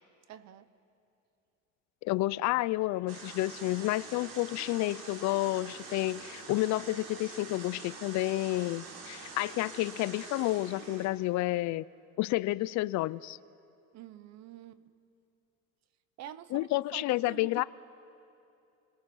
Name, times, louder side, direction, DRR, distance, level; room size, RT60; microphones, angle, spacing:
voice 1, 0.3-0.7 13.9-14.9 16.2-17.6, right 10 dB, 55° right, 14 dB, 1.0 m, -47 dB
voice 2, 2.0-11.8 12.2-13.4 16.5-17.6, left 18 dB, 60° left, 19 dB, 0.5 m, -30 dB
sound 1, 3.1-11.1, right 4 dB, 80° right, 3.9 m, -46 dB
29.5 x 21.5 x 6.3 m, 2.7 s
cardioid pair, 155°, 31 cm